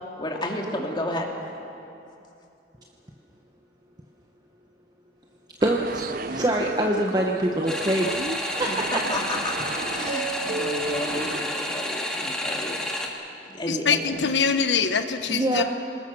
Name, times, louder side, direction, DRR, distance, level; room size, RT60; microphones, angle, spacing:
voice 1, 0.2-1.3 8.7-9.6 9.9-14.0, left 1 dB, 25° left, 2.6 m, -32 dB
voice 2, 5.6-8.2 8.6-8.7 15.3-15.6, right 1 dB, 25° right, 1.1 m, -24 dB
sound 1, 5.6-11.4, right 3 dB, 55° right, 0.7 m, -33 dB
sound 2, 7.7-13.1, left 1 dB, 5° left, 1.9 m, -30 dB
voice 3, 13.7-15.6, left 5 dB, 85° left, 1.2 m, -23 dB
27.5 x 20.0 x 6.3 m
head